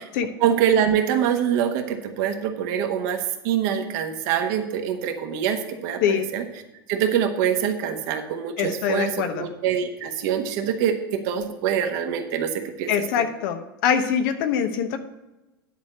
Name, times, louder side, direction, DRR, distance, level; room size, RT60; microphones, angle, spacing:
voice 1, 0.4-6.4 6.9-12.5 12.8-12.9 13.2-13.3, right 8 dB, 55° right, 5 dB, 1.4 m, -24 dB
voice 2, 8.6-9.5 12.9-15.0, left 8 dB, 55° left, 8 dB, 1.1 m, -24 dB
10.5 x 4.3 x 7.5 m, 1.0 s
hypercardioid pair, 95°, 12 cm